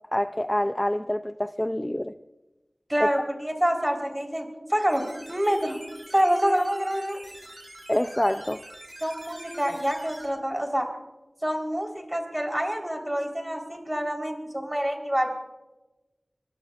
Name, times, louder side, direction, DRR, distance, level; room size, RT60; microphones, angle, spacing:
voice 1, 0.1-2.1 3.0-3.1 7.9-8.6, left 1 dB, 20° left, 10 dB, 0.4 m, -26 dB
voice 2, 2.9-5.0 5.3-5.8 6.1-7.2 9.0-10.9 11.4-15.3, equal, 15° right, 2 dB, 3.9 m, -26 dB
sound 1, 4.9-10.3, right 1 dB, 35° right, 6.4 m, -45 dB
23.5 x 21.5 x 2.5 m, 1.1 s
wide cardioid pair, 55°, 0 cm